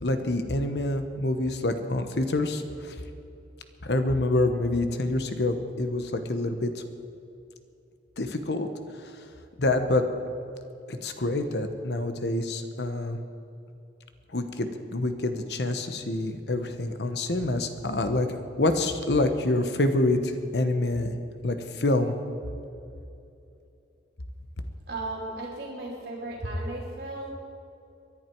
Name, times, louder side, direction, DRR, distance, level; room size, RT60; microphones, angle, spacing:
voice 1, 0.0-2.9 3.8-6.8 8.2-8.7 9.6-10.0 10.9-13.2 14.3-18.3 18.6-21.2 21.4-22.1, left 2 dB, 65° left, 8 dB, 1.0 m, -26 dB
voice 2, 24.9-27.3, right 1 dB, 70° right, -4 dB, 3.0 m, -34 dB
23.0 x 11.0 x 4.6 m, 2.6 s
head